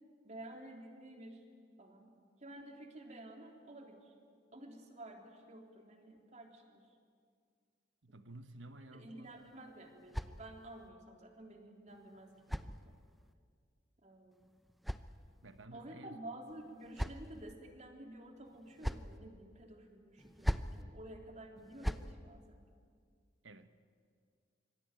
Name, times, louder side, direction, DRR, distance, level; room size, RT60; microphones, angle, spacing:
voice 1, 0.2-1.4 1.8-2.2 2.4-4.1 4.5-6.8 8.1-8.3 8.9-12.9 14.0-14.5 15.7-22.6, right 1 dB, 40° right, 2 dB, 3.4 m, -52 dB
voice 2, 8.0-9.3 15.4-16.2 23.4-23.7, right 2 dB, 85° right, 10 dB, 1.3 m, -53 dB
sound 1, 9.2-10.9 11.9-13.3 14.3-15.7 16.5-17.5 18.5-19.2 20.2-20.8 21.6-22.1, equal, ahead, 0.7 m, -41 dB
25.5 x 23.0 x 9.2 m, 2.1 s
head